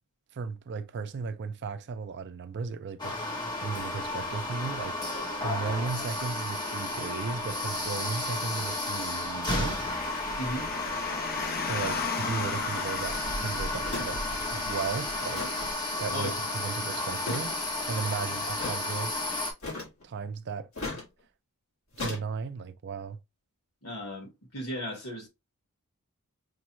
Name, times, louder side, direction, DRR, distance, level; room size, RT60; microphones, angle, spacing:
voice 1, 0.3-5.0 5.4-10.0 11.6-15.4 16.0-17.5 17.9-19.1 20.0-20.7 20.9-21.0 22.0-23.2, right 5 dB, 50° right, 0.4 m, -35 dB
sound 1, 3.0-19.5, left 2 dB, 20° left, 1.0 m, -33 dB
Car, 9.9-15.7, left 4 dB, 40° left, 0.6 m, -36 dB
voice 2, 10.4-10.7 16.1-16.3 23.8-25.3, equal, 80° left, 2.0 m, -36 dB
sound 2, 12.7-12.9 13.9-14.1 14.4-14.5 15.2-15.7 17.2-17.6 18.6-18.8 19.6-20.0 20.8-21.1 22.0-22.2, left 3 dB, 65° left, 1.5 m, -36 dB
5.1 x 2.3 x 3.0 m
head